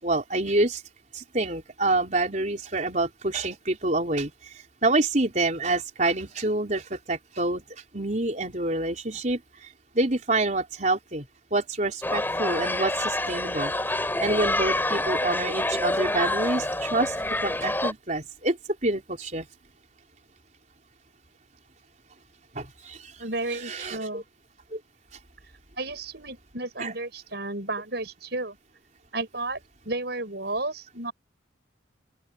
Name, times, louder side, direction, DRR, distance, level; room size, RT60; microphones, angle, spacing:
voice 1, 0.0-0.8 1.1-4.3 4.8-7.6 7.9-9.7 9.9-11.2 11.5-13.7 14.2-17.1 17.4-18.6 18.8-19.5 22.5-23.1 23.7-24.2 24.7-24.8 26.8-26.9, right 2 dB, 40° right, 4.4 m, -27 dB
sound 1, 12.0-17.9, left 1 dB, 10° left, 4.0 m, -27 dB
voice 2, 23.2-24.2 25.8-28.6 29.1-31.1, right 2 dB, 60° right, 7.4 m, -32 dB
open air
head